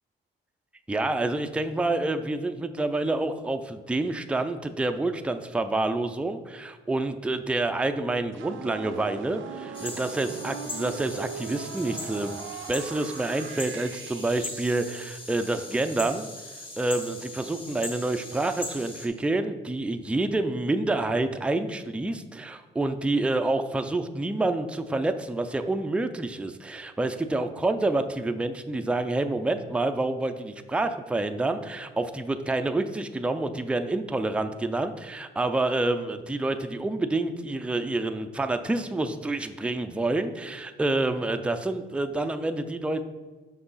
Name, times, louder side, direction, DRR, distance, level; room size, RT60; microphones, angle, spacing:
voice 1, 0.9-12.4 12.7-16.3 16.8-43.0, right 2 dB, 5° right, 7 dB, 0.4 m, -28 dB
sound 1, 8.3-15.0, right 7 dB, 75° right, 0.5 m, -40 dB
sound 2, 9.7-19.1, left 1 dB, 25° left, 1.2 m, -40 dB
5.8 x 5.5 x 4.0 m, 1.3 s
cardioid pair, 90°, 20 cm